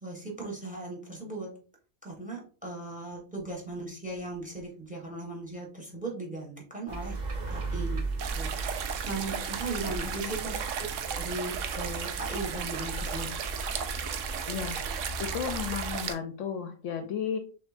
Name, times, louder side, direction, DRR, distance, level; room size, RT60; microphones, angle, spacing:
voice 1, 0.0-1.5 2.0-7.1 7.5-8.0 8.3-8.5 9.1-13.3, right 2 dB, 5° right, 0 dB, 1.2 m, -38 dB
sound 1, 6.9-16.0, right 2 dB, 45° right, 0.6 m, -37 dB
sound 2, 8.2-16.1, right 7 dB, 70° right, 0.9 m, -35 dB
voice 2, 14.5-14.9 15.2-17.4, left 7 dB, 70° left, 7 dB, 0.9 m, -34 dB
6.2 x 2.8 x 2.5 m, 0.39 s
omnidirectional pair, 1.4 m